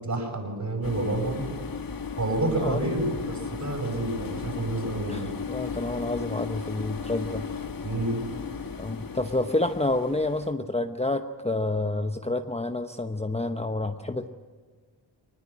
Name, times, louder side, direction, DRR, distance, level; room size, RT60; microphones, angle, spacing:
voice 1, 0.0-1.5 2.2-5.3 7.8-8.4, right 2 dB, 40° right, 2 dB, 7.6 m, -29 dB
sound 1, 0.8-10.5, left 5 dB, 50° left, 1.7 m, -36 dB
voice 2, 2.6-3.0 5.1-7.5 8.8-14.3, left 2 dB, 15° left, 6 dB, 1.0 m, -29 dB
20.5 x 20.5 x 8.8 m, 1.5 s
cardioid pair, 65°, 43 cm